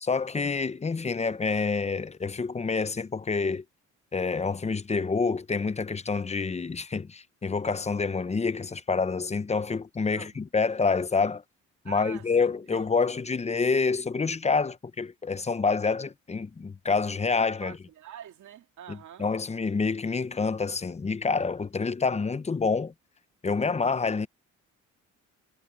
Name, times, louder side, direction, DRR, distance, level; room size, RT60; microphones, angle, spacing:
voice 1, 0.0-3.6 4.1-11.4 11.8-17.8 18.9-22.9 23.4-24.3, left 4 dB, 20° left, 0.8 m, -27 dB
voice 2, 10.1-10.5 11.8-13.1 17.6-19.3, right 11 dB, 70° right, 2.6 m, -46 dB
cardioid pair, 90°, 30 cm